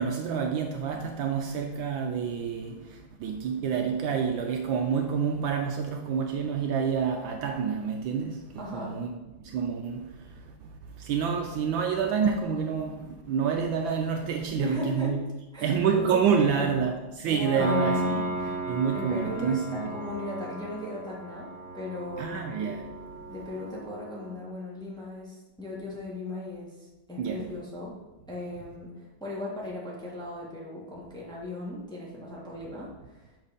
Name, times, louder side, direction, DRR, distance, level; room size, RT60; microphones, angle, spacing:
voice 1, 0.0-10.7 11.0-15.2 15.6-19.9 22.2-23.2 27.2-27.6, right 6 dB, 75° right, 1.2 m, -28 dB
voice 2, 8.6-9.0 11.3-11.4 14.6-15.2 15.5-16.8 17.3-17.9 18.9-21.5 21.7-22.5 23.3-28.0 28.3-33.3, left 1 dB, ahead, 1.2 m, -37 dB
Piano, 17.6-24.3, equal, 60° left, 2.4 m, -34 dB
6.3 x 4.5 x 5.0 m
omnidirectional pair, 2.4 m